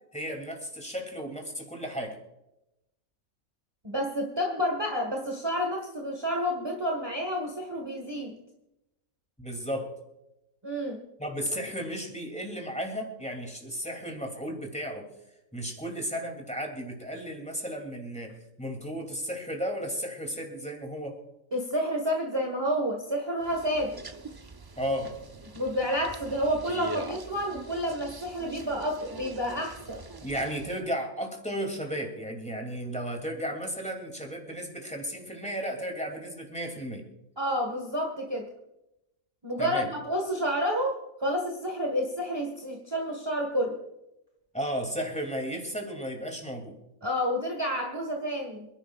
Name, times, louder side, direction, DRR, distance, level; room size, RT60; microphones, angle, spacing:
voice 1, 0.1-2.2 9.4-9.9 11.2-15.1 15.5-21.2 24.8-25.2 30.2-37.1 39.6-39.9 44.5-46.8, equal, 5° left, 2 dB, 2.7 m, -34 dB
voice 2, 3.8-8.3 10.6-11.0 21.5-24.0 25.5-30.0 37.4-38.5 39.4-43.8 47.0-48.7, equal, 20° right, 1 dB, 1.5 m, -30 dB
sound 1, 23.4-30.8, right 3 dB, 35° right, 0.3 m, -43 dB
27.5 x 11.0 x 2.4 m, 0.90 s
omnidirectional pair, 1.4 m